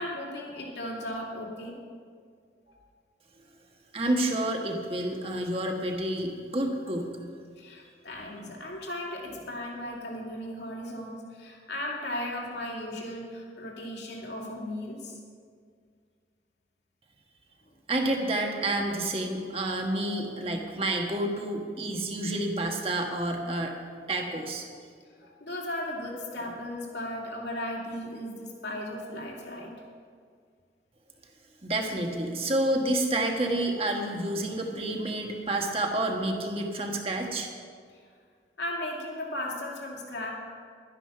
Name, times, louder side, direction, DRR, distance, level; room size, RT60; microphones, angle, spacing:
voice 1, 0.0-1.8 2.7-2.8 7.6-15.1 25.1-29.7 38.6-40.3, left 1 dB, 80° left, -2 dB, 2.6 m, -36 dB
voice 2, 3.9-7.1 17.9-23.7 24.1-24.7 31.6-37.5, right 1 dB, 30° right, 2 dB, 1.4 m, -29 dB
12.5 x 9.9 x 5.9 m, 2.1 s
head